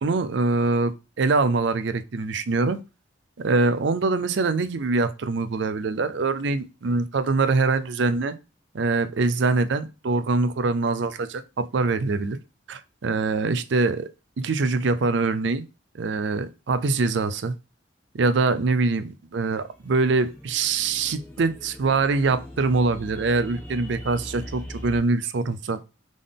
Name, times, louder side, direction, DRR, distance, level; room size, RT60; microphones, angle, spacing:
voice 1, 0.0-2.8 3.4-8.4 8.7-12.4 12.7-14.1 14.4-15.6 15.9-17.5 18.1-25.8, right 3 dB, 60° right, 0.4 m, -24 dB
sound 1, 19.7-25.0, equal, 10° left, 1.3 m, -41 dB
3.8 x 3.7 x 3.5 m
head